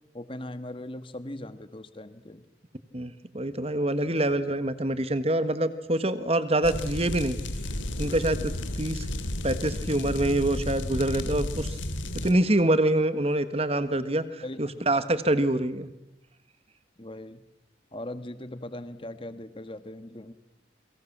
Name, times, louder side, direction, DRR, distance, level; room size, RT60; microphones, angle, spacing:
voice 1, 0.1-2.4 14.4-14.7 17.0-17.4 17.9-20.3, left 1 dB, 30° left, 11 dB, 1.5 m, -39 dB
voice 2, 2.9-7.4 8.0-9.1 9.4-11.8 12.2-14.2 14.6-15.9, right 1 dB, 30° right, 12 dB, 1.5 m, -25 dB
sound 1, 6.6-12.3, left 1 dB, 90° left, 2.7 m, -32 dB
29.0 x 23.5 x 7.4 m, 0.91 s
head